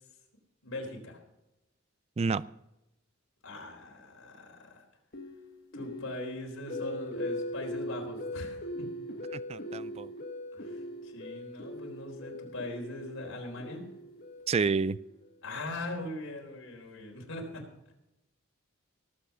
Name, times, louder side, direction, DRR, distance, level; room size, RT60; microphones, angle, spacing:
voice 1, 0.6-1.2 3.4-4.8 5.7-8.9 10.5-13.8 15.4-17.6, left 2 dB, 80° left, 0 dB, 4.1 m, -41 dB
sound 1, 5.1-15.2, left 1 dB, 50° left, 1.7 m, -40 dB
voice 2, 9.3-10.1 14.5-15.0, right 4 dB, 30° right, 18 dB, 0.4 m, -29 dB
18.5 x 8.0 x 5.6 m, 0.91 s
head